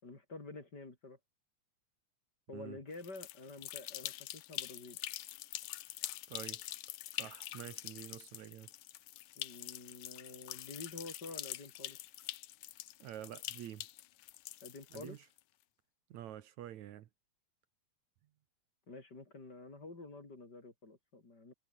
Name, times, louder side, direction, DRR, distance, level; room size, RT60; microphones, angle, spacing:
voice 1, 0.0-1.2 2.5-5.0 9.4-12.0 14.6-15.2 18.9-21.5, left 3 dB, 30° left, 4.8 m, -49 dB
sound 1, 2.9-15.4, left 15 dB, 85° left, 2.4 m, -45 dB
voice 2, 6.3-6.6 7.1-8.7 13.0-13.9 14.9-15.3 16.1-17.1, right 11 dB, 70° right, 2.5 m, -48 dB
omnidirectional pair, 3.4 m